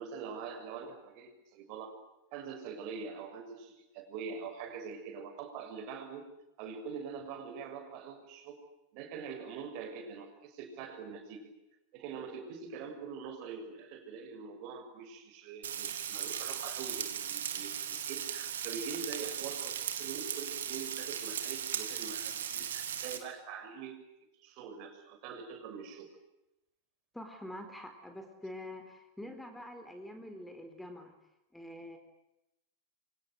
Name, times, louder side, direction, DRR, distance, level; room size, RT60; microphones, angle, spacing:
voice 1, 0.0-1.9 2.3-6.2 6.6-8.5 8.9-11.4 11.9-24.0 24.4-26.1, right 6 dB, 45° right, 6 dB, 6.8 m, -44 dB
Frying (food), 15.6-23.2, right 9 dB, 60° right, 3.6 m, -37 dB
voice 2, 27.1-31.1 31.5-32.0, left 1 dB, 5° left, 6 dB, 4.3 m, -45 dB
29.0 x 26.0 x 7.8 m, 0.91 s
figure-of-eight pair, 90°, 0 cm